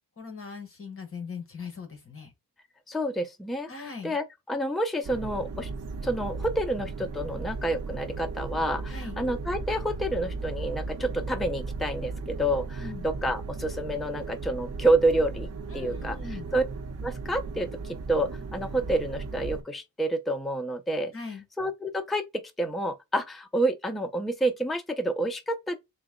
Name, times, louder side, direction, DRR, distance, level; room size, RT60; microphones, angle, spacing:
voice 1, 0.2-2.3 3.7-4.2 8.9-9.2 12.8-13.1 15.7-16.5 21.1-21.5, left 5 dB, 35° left, 1.2 m, -40 dB
voice 2, 2.9-3.7 4.0-5.7 6.0-15.5 15.7-16.2 16.5-16.6 17.0-21.1 21.6-22.3 22.6-25.8, right 1 dB, ahead, 0.4 m, -28 dB
sound 1, 5.0-19.6, right 4 dB, 45° right, 0.8 m, -36 dB
3.9 x 2.2 x 3.6 m
cardioid pair, 130°, 37 cm